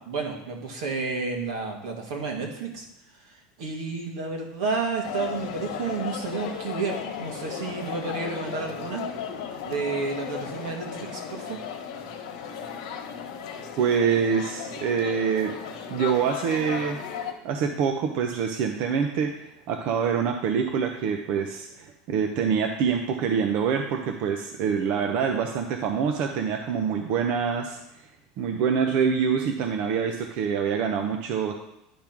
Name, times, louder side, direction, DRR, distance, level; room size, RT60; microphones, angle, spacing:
voice 1, 0.0-2.9 3.2-9.1 9.6-11.6, right 4 dB, 80° right, 1 dB, 2.0 m, -31 dB
sound 1, 5.0-17.3, left 7 dB, 80° left, 1.3 m, -35 dB
voice 2, 13.8-15.5 15.9-17.0 17.4-28.1 28.4-31.5, right 6 dB, 45° right, 4 dB, 0.7 m, -25 dB
10.5 x 3.6 x 5.9 m, 0.88 s
supercardioid pair, 170°, 4 cm